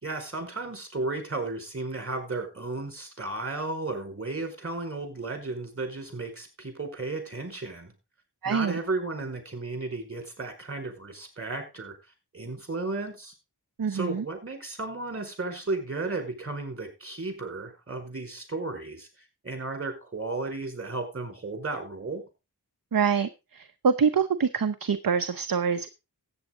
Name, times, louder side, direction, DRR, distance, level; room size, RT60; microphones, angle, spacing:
voice 1, 0.0-7.9 8.4-12.0 12.3-13.3 13.9-19.1 19.4-22.2, right 3 dB, 35° right, 5 dB, 5.0 m, -34 dB
voice 2, 8.4-8.8 13.8-14.3 22.9-25.9, right 6 dB, 60° right, 10 dB, 0.8 m, -25 dB
14.0 x 8.9 x 3.8 m, 0.27 s
wide cardioid pair, 45°, 39 cm